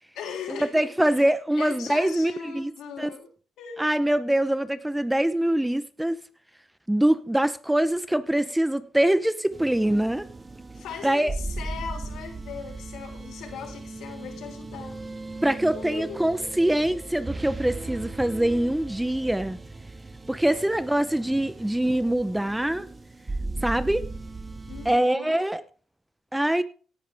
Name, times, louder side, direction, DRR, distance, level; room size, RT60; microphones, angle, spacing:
voice 1, 0.1-3.3 3.6-3.8 10.7-15.0 15.7-16.4 20.4-20.7 24.7-25.5, left 6 dB, 85° left, 2 dB, 3.6 m, -39 dB
voice 2, 0.7-2.7 3.0-3.1 3.8-6.2 6.9-10.3 11.0-11.3 15.4-19.6 20.3-22.9 23.6-24.0 24.8-25.6 26.3-26.6, right 1 dB, 5° right, 13 dB, 0.8 m, -24 dB
sound 1, 9.5-25.0, right 2 dB, 25° right, 1.6 m, -37 dB
17.0 x 10.5 x 3.5 m, 0.40 s
cardioid pair, 90°, 0 cm